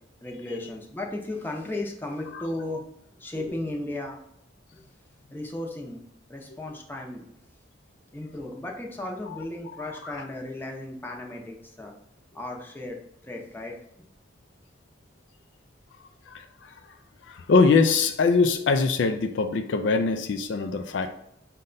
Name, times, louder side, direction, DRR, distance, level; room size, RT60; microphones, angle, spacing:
voice 1, 0.2-2.8 3.2-4.2 4.7-4.8 5.3-6.0 6.3-7.2 8.1-11.9 12.3-13.0 13.2-13.7, left 1 dB, 10° left, 0 dB, 0.6 m, -35 dB
voice 2, 16.3-16.7 17.3-21.1, left 4 dB, 65° left, 7 dB, 0.4 m, -23 dB
5.2 x 2.2 x 3.8 m, 0.76 s
head